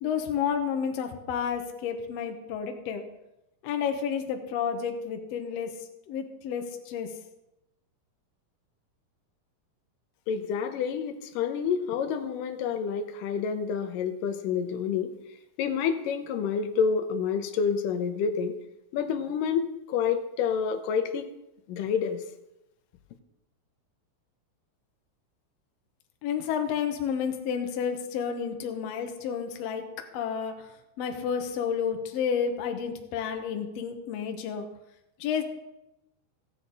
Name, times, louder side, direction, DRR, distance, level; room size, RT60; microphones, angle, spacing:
voice 1, 0.0-3.0 3.6-5.8 6.1-7.2 26.2-29.9 30.1-34.7 35.2-35.4, left 7 dB, 65° left, 5 dB, 1.8 m, -31 dB
voice 2, 10.3-15.1 15.6-18.6 18.9-21.3 21.7-22.2, left 6 dB, 85° left, 7 dB, 2.4 m, -28 dB
15.0 x 8.4 x 4.0 m, 0.92 s
omnidirectional pair, 3.7 m